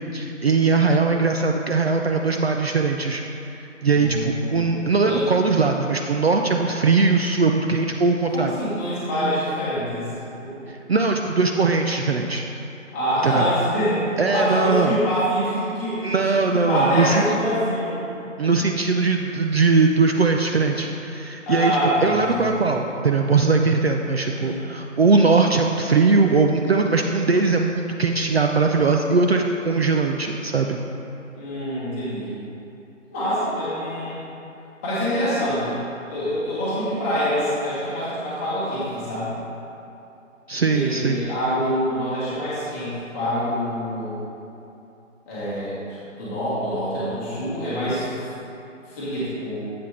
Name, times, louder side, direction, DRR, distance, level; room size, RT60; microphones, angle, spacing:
voice 1, 0.1-3.2 3.8-8.5 10.7-12.4 13.2-13.5 14.2-15.0 16.0-17.3 18.4-30.8 40.5-41.2, right 4 dB, 55° right, 3 dB, 0.5 m, -20 dB
voice 2, 3.9-5.3 8.3-10.7 12.9-16.1 16.6-18.0 21.5-22.8 24.2-24.6 31.3-32.3 33.1-34.2 34.8-35.8 36.1-39.3 40.7-44.2 45.3-48.2 48.9-49.7, equal, 10° left, -11 dB, 1.2 m, -25 dB
7.7 x 7.3 x 3.2 m, 2.8 s
figure-of-eight pair, 155°, 39 cm